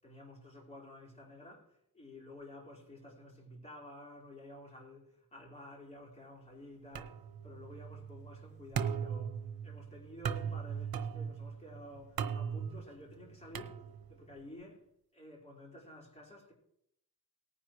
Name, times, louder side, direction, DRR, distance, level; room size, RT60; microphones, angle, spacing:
voice 1, 0.0-14.9 15.1-16.5, left 1 dB, 20° left, 4.5 m, -52 dB
sound 1, 6.9-14.3, right 7 dB, 85° right, 1.0 m, -39 dB
18.5 x 10.0 x 3.1 m
wide cardioid pair, 135°, 35 cm